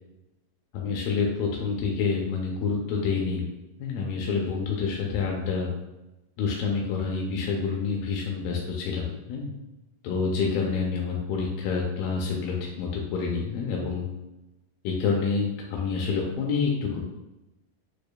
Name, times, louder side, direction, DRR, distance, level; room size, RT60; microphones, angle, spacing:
voice 1, 0.7-3.4 3.8-5.7 6.4-9.5 10.0-14.1 14.8-17.1, left 5 dB, 85° left, -1 dB, 2.2 m, -28 dB
6.6 x 2.2 x 2.2 m, 0.99 s
omnidirectional pair, 3.9 m